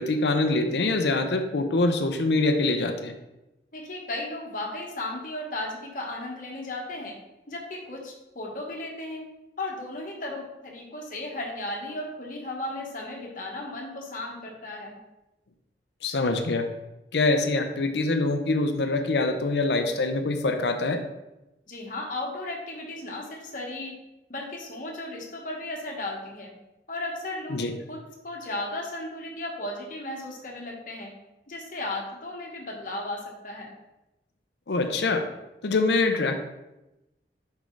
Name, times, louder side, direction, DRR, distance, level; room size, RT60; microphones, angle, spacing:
voice 1, 0.0-3.1 16.0-16.7 17.1-21.0 27.5-27.7 34.7-35.3 35.6-36.3, left 2 dB, 75° left, 7 dB, 0.6 m, -24 dB
voice 2, 3.7-7.2 7.5-9.3 9.6-15.0 21.7-24.0 24.3-26.5 26.9-27.6 27.9-31.1 31.5-33.7, left 2 dB, 50° left, 0 dB, 1.2 m, -35 dB
5.4 x 4.2 x 4.5 m, 0.96 s
head